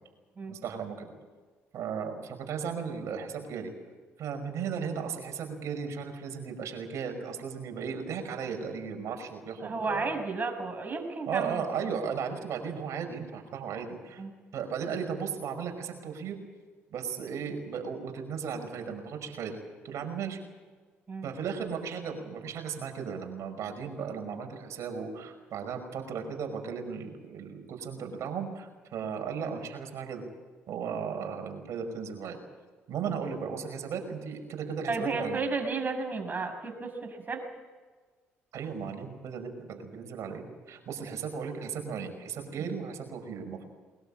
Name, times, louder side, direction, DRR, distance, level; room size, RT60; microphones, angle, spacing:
voice 1, 0.5-1.1 1.7-3.7 4.2-10.1 11.3-14.2 14.5-16.4 16.9-19.6 19.8-20.4 21.2-30.2 30.7-32.4 32.9-35.4 38.5-43.7, right 6 dB, 65° right, 5 dB, 5.4 m, -36 dB
voice 2, 9.6-11.6 14.2-14.3 21.1-21.3 34.9-37.4 42.6-42.7, right 4 dB, 35° right, 4 dB, 6.7 m, -33 dB
22.0 x 20.5 x 8.7 m, 1.4 s
hypercardioid pair, 55°, 6 cm